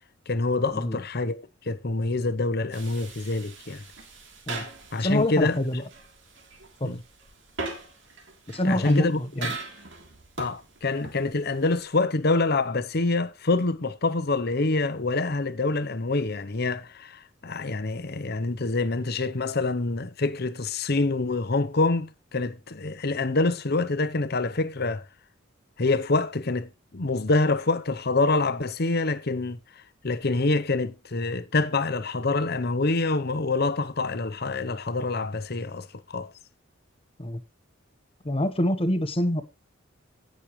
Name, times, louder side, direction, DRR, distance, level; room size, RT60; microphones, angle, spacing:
voice 1, 0.3-3.8 4.9-5.6 6.8-7.0 8.6-9.2 10.4-25.0 25.8-29.6 30.0-36.3, left 3 dB, 50° left, 0.9 m, -26 dB
sound 1, 2.7-11.9, right 3 dB, 65° right, 3.2 m, -41 dB
voice 2, 5.0-5.8 6.8-6.9 8.5-9.5 37.2-37.4 38.2-39.4, left 1 dB, 30° left, 1.2 m, -26 dB
17.5 x 6.5 x 3.2 m
head